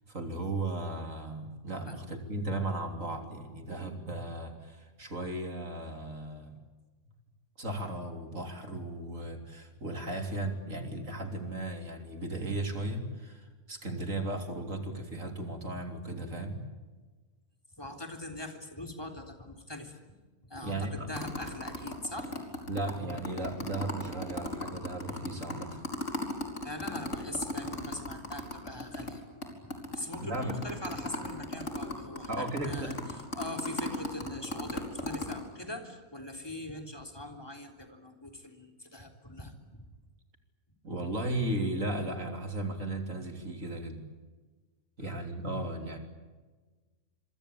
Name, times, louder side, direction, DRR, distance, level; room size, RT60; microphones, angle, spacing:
voice 1, 0.1-6.6 7.6-16.6 20.6-21.1 22.7-25.8 30.2-30.6 32.3-33.0 40.8-44.0 45.0-46.0, right 2 dB, 60° right, 5 dB, 3.7 m, -36 dB
voice 2, 17.8-20.0 20.4-22.3 26.6-29.2 29.6-39.9 45.0-45.1, left 1 dB, 15° left, 4 dB, 3.5 m, -42 dB
sound 1, 21.2-29.1 29.4-29.5 29.7-35.4, left 2 dB, 55° left, 4.9 m, -36 dB
27.0 x 24.0 x 8.7 m, 1.3 s
omnidirectional pair, 1.5 m